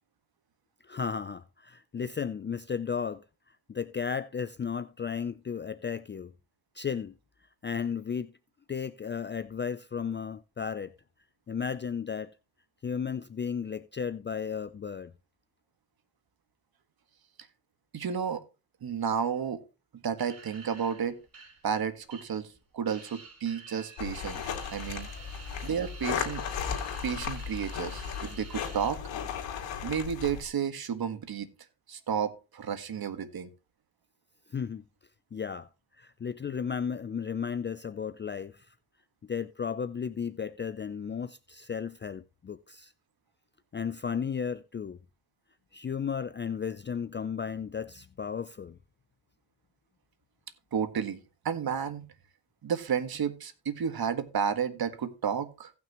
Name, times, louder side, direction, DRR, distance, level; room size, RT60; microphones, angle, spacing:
voice 1, 0.8-6.3 6.7-7.2 7.6-8.3 8.7-10.9 11.5-12.3 12.8-15.1 24.7-25.3 34.5-34.8 35.3-35.7 36.0-38.8 39.3-42.9 43.7-45.0 45.7-48.8, left 6 dB, 25° left, 0.5 m, -34 dB
voice 2, 17.9-18.4 18.8-19.6 20.0-21.2 21.6-22.5 22.7-24.4 24.7-25.1 25.6-26.4 27.0-29.0 29.8-31.5 31.9-33.5 50.7-51.2 51.4-52.1 52.6-55.7, right 7 dB, 55° right, 1.7 m, -31 dB
sound 1, 20.2-22.6 22.9-28.9, right 3 dB, 35° right, 5.3 m, -49 dB
sound 2, 24.0-30.4, left 7 dB, 85° left, 2.6 m, -36 dB
16.5 x 6.1 x 3.0 m
supercardioid pair, 60°, 43 cm